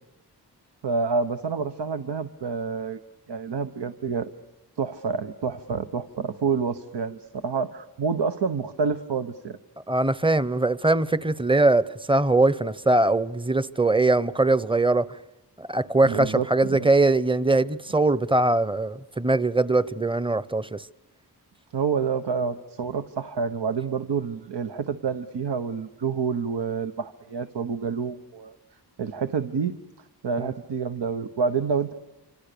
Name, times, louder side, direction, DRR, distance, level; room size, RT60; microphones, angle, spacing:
voice 1, 0.8-3.0 3.3-4.3 4.8-9.6 16.0-16.9 21.7-28.6 29.0-29.7 30.2-31.9, right 5 dB, 80° right, 1.1 m, -28 dB
voice 2, 9.9-15.1 15.6-20.9 30.4-30.5, right 2 dB, 10° right, 0.8 m, -22 dB
27.0 x 26.0 x 6.8 m
cardioid pair, 60°, 41 cm